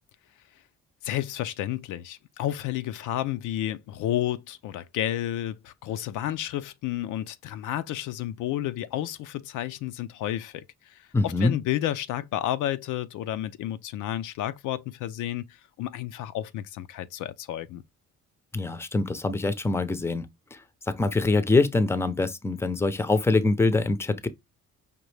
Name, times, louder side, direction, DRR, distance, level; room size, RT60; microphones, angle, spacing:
voice 1, 1.0-15.5 15.8-17.8, left 12 dB, 80° left, 0.5 m, -31 dB
voice 2, 11.1-11.5 18.5-20.6 20.9-24.3, left 3 dB, 10° left, 0.5 m, -24 dB
5.1 x 2.6 x 3.2 m
cardioid pair, 90°, 30 cm